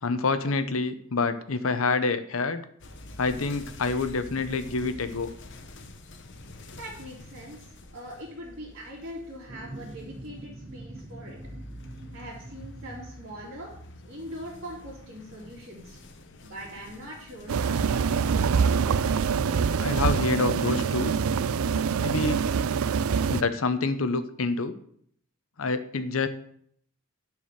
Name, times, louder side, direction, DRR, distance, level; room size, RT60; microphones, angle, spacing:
voice 1, 0.0-2.6 3.2-5.3 19.8-21.1 21.9-22.4 23.3-24.7 25.6-26.3, left 3 dB, 75° left, 11 dB, 0.8 m, -27 dB
sound 1, 2.8-21.3, left 2 dB, 60° left, 1.1 m, -47 dB
voice 2, 6.7-11.4 12.1-13.7 14.0-16.0 16.4-19.1, equal, 55° right, -9 dB, 3.0 m, -42 dB
sound 2, 9.5-13.8, right 1 dB, 20° right, 0.9 m, -44 dB
sound 3, 17.5-23.4, right 6 dB, 90° right, 0.4 m, -25 dB
10.5 x 4.7 x 6.7 m, 0.64 s
head